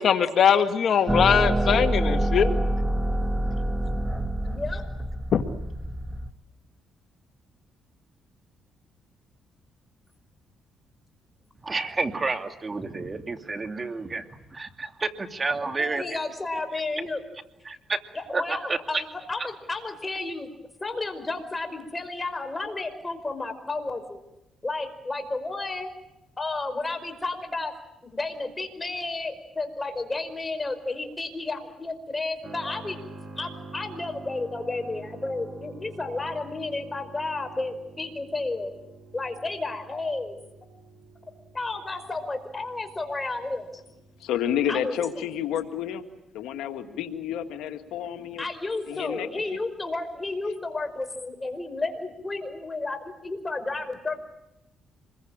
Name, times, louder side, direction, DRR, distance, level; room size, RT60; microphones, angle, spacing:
voice 1, 0.0-2.5, left 8 dB, 60° left, 1.7 m, -21 dB
sound 1, 1.1-6.3, right 1 dB, 10° right, 1.6 m, -26 dB
voice 2, 4.5-4.9 15.7-17.2 18.1-20.5 20.8-24.2 24.6-25.9 26.4-27.7 28.0-33.0 33.4-38.7 39.1-40.4 41.5-43.8 44.7-45.3 48.4-54.2, left 3 dB, 20° left, 5.1 m, -32 dB
voice 3, 11.6-16.0 17.7-18.0 18.3-19.0, right 3 dB, 30° right, 2.5 m, -30 dB
Keyboard (musical), 32.4-44.8, right 3 dB, 50° right, 6.6 m, -46 dB
voice 4, 44.2-46.0 46.3-48.4 48.9-49.6, left 9 dB, 90° left, 2.1 m, -30 dB
26.5 x 22.0 x 8.9 m
cardioid pair, 90°, 0 cm